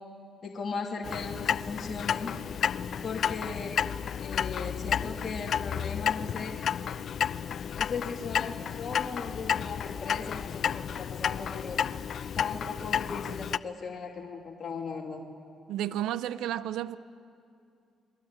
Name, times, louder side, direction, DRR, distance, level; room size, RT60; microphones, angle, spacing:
voice 1, 0.4-2.3 3.0-3.8 4.2-6.6 7.7-11.8 12.3-15.3, left 4 dB, 45° left, 0 dB, 2.8 m, -37 dB
Clock, 1.0-13.6, left 8 dB, 60° left, 0.6 m, -31 dB
voice 2, 15.7-17.0, right 12 dB, 85° right, 15 dB, 0.6 m, -32 dB
29.0 x 22.0 x 8.9 m, 2.5 s
cardioid pair, 90°, 0 cm